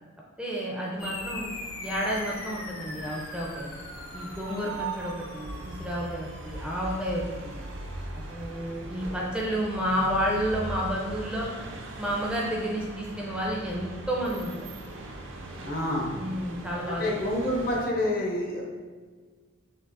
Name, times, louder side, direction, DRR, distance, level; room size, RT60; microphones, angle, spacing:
voice 1, 0.4-1.5 1.8-3.7 4.1-7.6 8.3-11.5 12.0-14.7 16.1-17.2, equal, 5° right, -3 dB, 0.5 m, -31 dB
sound 1, 1.0-9.9, left 2 dB, 90° left, 0.7 m, -43 dB
sound 2, 1.0-17.8, right 2 dB, 65° right, 0.5 m, -40 dB
voice 2, 15.6-16.1 17.0-18.6, left 1 dB, 45° left, -2 dB, 0.8 m, -27 dB
6.0 x 2.5 x 2.5 m, 1.5 s
head